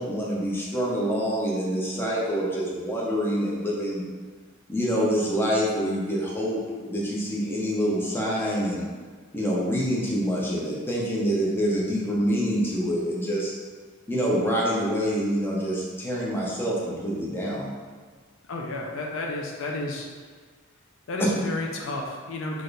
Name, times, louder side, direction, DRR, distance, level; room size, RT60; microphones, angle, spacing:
voice 1, 0.0-4.0 4.7-8.8 9.3-13.5 14.1-17.7, equal, 10° left, -5 dB, 0.5 m, -26 dB
voice 2, 18.5-20.1 21.1-22.6, left 2 dB, 60° left, 0 dB, 0.4 m, -31 dB
4.1 x 2.4 x 3.2 m, 1.5 s
head